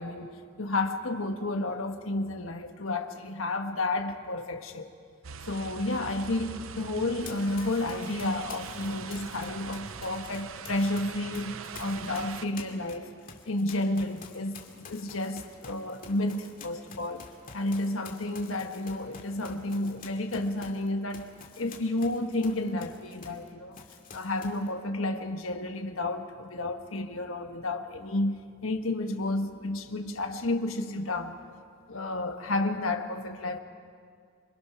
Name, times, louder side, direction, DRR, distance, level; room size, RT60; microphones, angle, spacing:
voice 1, 0.0-4.9 5.5-13.1 13.5-17.3 17.5-23.8 24.1-31.4 31.9-33.6, left 2 dB, 85° left, 1.4 m, -31 dB
sound 1, 5.2-12.5, right 6 dB, 90° right, 0.7 m, -42 dB
Run, 7.2-11.0 11.3-23.5 23.7-24.7, left 5 dB, 45° left, 2.4 m, -48 dB
26.5 x 24.0 x 6.0 m
head